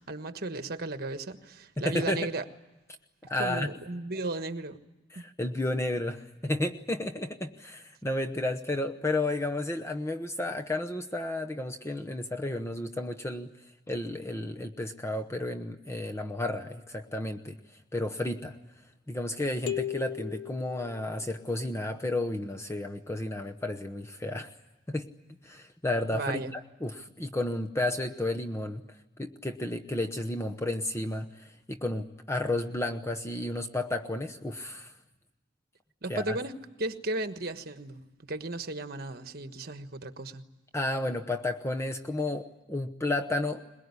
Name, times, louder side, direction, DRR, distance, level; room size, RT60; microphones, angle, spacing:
voice 1, 0.0-2.4 3.4-4.8 5.1-5.2 26.1-26.5 36.0-36.5 36.8-40.4, right 2 dB, 50° right, 9 dB, 1.4 m, -35 dB
voice 2, 1.8-2.3 3.3-3.7 5.1-13.5 13.9-17.6 17.9-18.5 19.1-24.5 24.9-25.1 25.4-28.8 29.2-34.9 36.1-36.4 40.7-43.6, left 1 dB, 15° left, 5 dB, 0.9 m, -32 dB
sound 1, 19.7-21.5, left 11 dB, 65° left, 1.5 m, -37 dB
22.5 x 21.5 x 9.7 m, 1.1 s
head